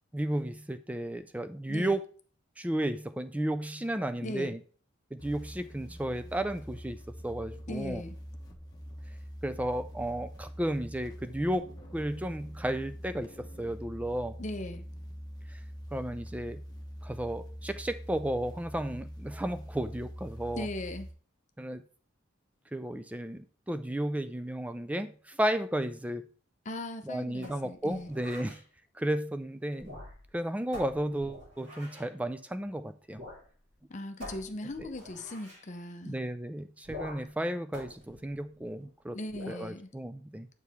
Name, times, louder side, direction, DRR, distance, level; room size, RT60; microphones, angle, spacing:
voice 1, 0.1-2.1 2.6-4.6 5.1-8.0 9.4-14.4 15.5-15.6 15.9-16.6 17.0-20.7 21.6-21.8 22.7-26.3 27.0-28.6 29.0-30.0 30.3-33.3 36.0-39.2 39.5-40.5, right 1 dB, 5° right, 0.4 m, -33 dB
voice 2, 4.2-4.6 7.7-8.2 14.4-14.9 20.5-21.1 26.6-28.1 33.9-36.2 39.1-39.9, left 1 dB, 35° left, 0.7 m, -39 dB
sound 1, 5.2-21.1, equal, 20° left, 1.0 m, -44 dB
sound 2, 27.4-28.6 29.7-30.4 30.7-32.1 33.1-33.5 33.7-33.8 34.2-35.7 36.8-37.4 37.7-38.8 39.3-39.7, left 1 dB, 60° right, 2.8 m, -46 dB
8.1 x 4.7 x 3.5 m
head